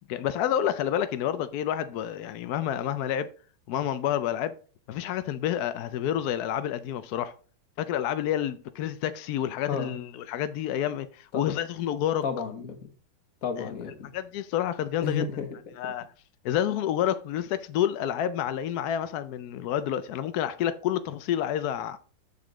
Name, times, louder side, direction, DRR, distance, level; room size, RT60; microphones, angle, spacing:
voice 1, 0.1-3.3 3.7-4.5 4.9-7.3 7.8-12.2 13.6-13.7 14.1-15.3 15.8-16.1 16.4-22.0, left 10 dB, 80° left, 0.8 m, -29 dB
voice 2, 12.2-12.9 13.4-14.1 15.0-15.6, left 6 dB, 50° left, 1.4 m, -32 dB
6.9 x 6.7 x 3.9 m
omnidirectional pair, 2.2 m